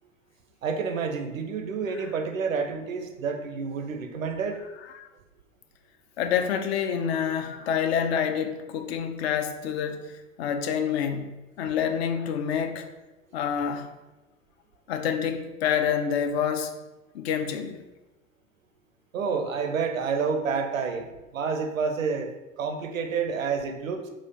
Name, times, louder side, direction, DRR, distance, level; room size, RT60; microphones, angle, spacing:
voice 1, 0.6-4.6 11.7-11.8 19.1-22.3 22.6-24.1, right 5 dB, 80° right, 0.6 m, -29 dB
voice 2, 6.2-10.1 10.4-11.3 11.6-12.9 13.3-13.9 14.9-16.7 17.1-17.8, left 8 dB, 50° left, 0.5 m, -27 dB
4.2 x 2.4 x 3.9 m
figure-of-eight pair, 85°, 40 cm